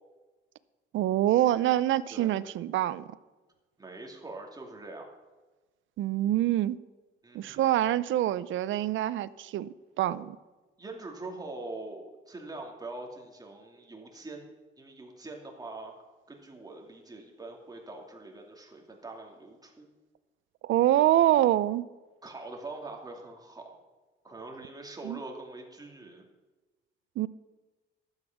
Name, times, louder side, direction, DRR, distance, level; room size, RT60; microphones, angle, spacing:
voice 1, 0.9-3.1 6.0-6.8 7.3-10.4 20.6-21.9 25.0-25.2 27.2-27.3, right 13 dB, 75° right, 0.5 m, -25 dB
voice 2, 3.8-5.0 7.2-7.8 10.8-14.4 14.8-15.9 16.3-19.9 22.2-23.8 24.2-26.2, right 2 dB, 20° right, 2.5 m, -43 dB
12.0 x 8.2 x 5.9 m
cardioid pair, 90°, 20 cm